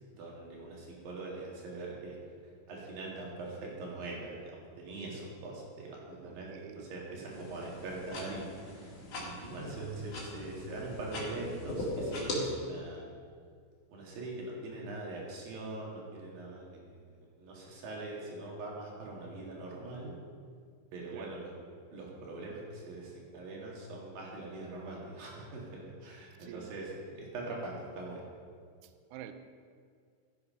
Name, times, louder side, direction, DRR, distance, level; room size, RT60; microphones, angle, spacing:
voice 1, 0.1-2.2 2.7-13.1 13.9-17.1 17.4-20.1 20.9-21.5 21.9-28.2, right 2 dB, 55° right, -3 dB, 3.5 m, -42 dB
voice 2, 6.2-7.4 21.1-21.4 26.4-26.7 28.8-29.3, right 10 dB, 85° right, 8 dB, 2.4 m, -49 dB
sound 1, 7.3-12.3, left 1 dB, 40° left, 2.7 m, -40 dB
14.0 x 8.6 x 5.5 m, 2.1 s
omnidirectional pair, 5.4 m